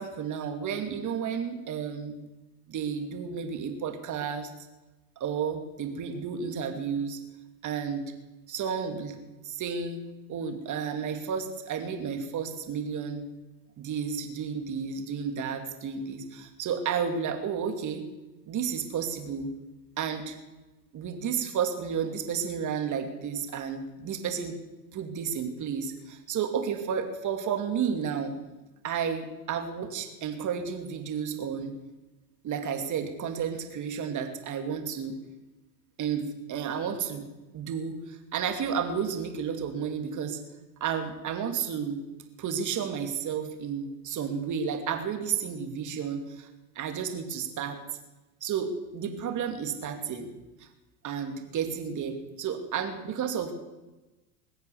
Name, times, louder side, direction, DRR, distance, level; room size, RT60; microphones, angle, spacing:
voice 1, 0.0-2.2 2.7-4.5 5.2-7.2 7.6-8.0 8.5-9.1 9.4-10.0 10.3-13.2 13.8-18.0 18.5-19.5 20.0-20.4 20.9-24.6 24.9-28.3 28.8-31.7 32.4-35.1 36.0-37.3 37.5-40.4 40.8-42.0 42.4-46.5 46.7-47.8 48.4-50.3 51.0-53.5, right 7 dB, 40° right, 5 dB, 2.6 m, -32 dB
21.0 x 8.0 x 7.1 m, 1.1 s
supercardioid pair, 100°, 44 cm